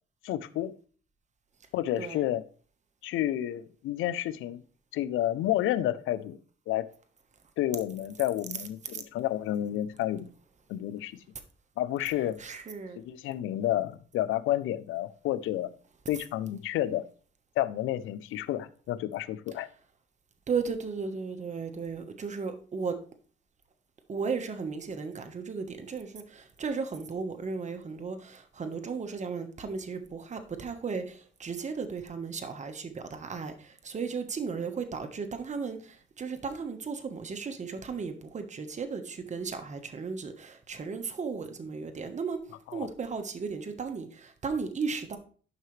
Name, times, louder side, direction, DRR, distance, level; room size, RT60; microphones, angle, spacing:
voice 1, 0.2-0.7 1.7-2.4 3.0-4.6 4.9-6.4 6.7-6.9 7.6-10.3 10.7-11.1 11.8-12.4 13.0-15.7 16.1-17.0 17.6-19.7 42.7-42.9, left 13 dB, 85° left, 0.6 m, -30 dB
voice 2, 12.4-13.0 20.5-23.0 24.1-45.2, right 5 dB, 35° right, 1.3 m, -35 dB
11.0 x 5.7 x 3.3 m
cardioid pair, 90°, 20 cm